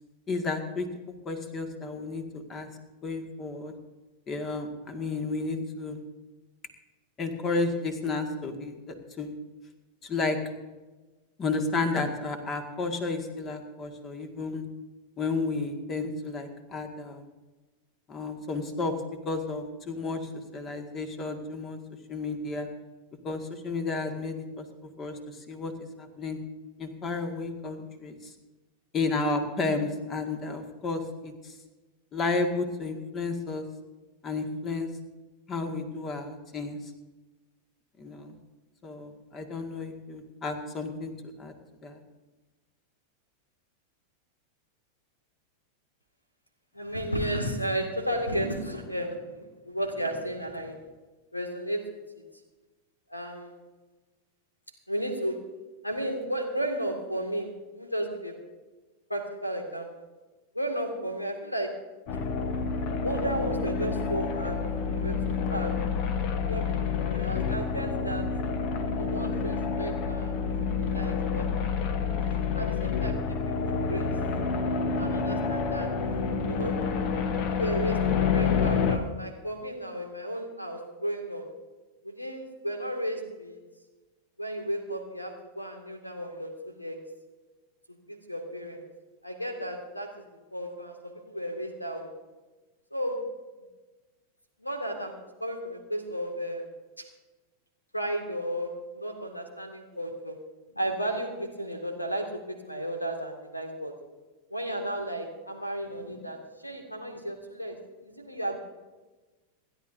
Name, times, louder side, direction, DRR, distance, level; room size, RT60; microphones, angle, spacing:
voice 1, 0.3-0.9 1.3-2.7 3.0-3.7 4.3-6.0 7.2-8.7 9.2-9.3 10.0-10.4 11.4-14.6 15.2-17.2 18.1-18.9 19.2-21.8 22.1-22.7 23.2-24.6 25.0-25.7 26.0-26.4 26.8-28.3 28.9-31.6 32.1-33.7 34.2-34.9 35.5-36.8 38.0-38.4 38.8-41.1 41.4-41.5 41.8-42.0, left 3 dB, 25° left, 5 dB, 1.9 m, -32 dB
voice 2, 46.7-50.8 51.3-51.8 53.1-53.5 54.9-55.4 55.8-58.3 59.1-59.9 60.5-61.7 63.0-64.6 64.9-65.7 66.5-66.8 67.1-68.3 69.0-70.4 70.8-71.5 72.3-73.3 73.6-74.1 75.0-75.9 76.4-76.8 77.4-81.4 82.0-83.6 84.4-87.0 88.3-88.8 89.2-90.2 90.5-92.1 92.9-93.2 94.6-95.1 95.4-96.7 97.0-97.1 97.9-100.4 100.7-103.9 104.5-108.6, right 1 dB, 85° left, 4 dB, 2.1 m, -33 dB
sound 1, 62.1-79.0, left 5 dB, 40° left, 1.1 m, -28 dB
27.5 x 11.5 x 2.7 m, 1.2 s
figure-of-eight pair, 90°, 0 cm